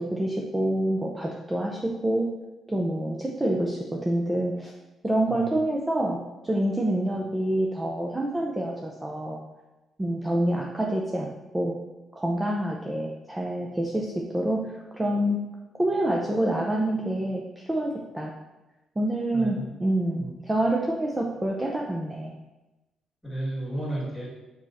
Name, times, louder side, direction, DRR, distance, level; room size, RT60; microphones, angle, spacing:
voice 1, 0.0-2.3 2.7-4.7 5.0-9.4 10.0-11.8 12.1-15.4 15.7-18.3 19.0-22.3, right 1 dB, 15° right, 0 dB, 0.7 m, -27 dB
voice 2, 19.3-19.7 20.2-20.4 23.2-24.3, right 1 dB, 5° left, -5 dB, 2.2 m, -33 dB
5.5 x 5.1 x 4.3 m, 1.1 s
cardioid pair, 90°, 0 cm